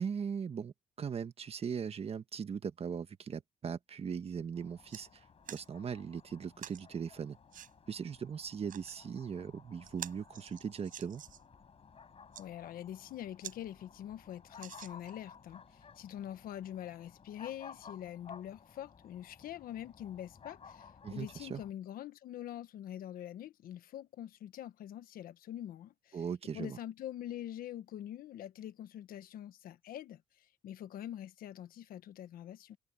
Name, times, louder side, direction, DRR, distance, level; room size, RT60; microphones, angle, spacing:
voice 1, 0.0-5.2 5.5-7.4 7.9-11.2 21.0-21.6 26.1-26.8, right 6 dB, 40° right, 1.5 m, -39 dB
sound 1, 4.2-4.3 4.6-5.0 5.4-5.7 6.6-6.8 7.5-7.7 8.5-9.0 9.4-9.5 9.8-11.5 12.1-12.4 13.0-13.1 13.4-13.6 13.9-14.0 14.6-15.3 15.9-16.0, right 10 dB, 65° right, 6.6 m, -48 dB
sound 2, 4.5-21.7, left 6 dB, 40° left, 7.6 m, -56 dB
voice 2, 12.4-26.2 26.5-32.8, left 11 dB, 75° left, 1.3 m, -45 dB
cardioid pair, 105°, 15 cm